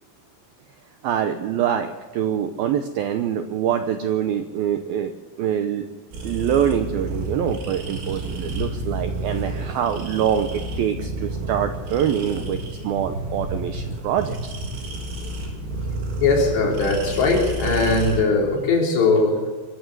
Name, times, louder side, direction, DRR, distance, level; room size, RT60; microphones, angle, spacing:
voice 1, 1.0-5.8 6.2-12.6 12.8-14.5, right 9 dB, 85° right, 8 dB, 2.1 m, -25 dB
sound 1, 6.1-18.2, right 1 dB, 65° right, 5.6 m, -30 dB
voice 2, 16.2-19.5, left 3 dB, 65° left, 0 dB, 5.9 m, -20 dB
22.5 x 14.5 x 8.0 m, 1.3 s
omnidirectional pair, 5.5 m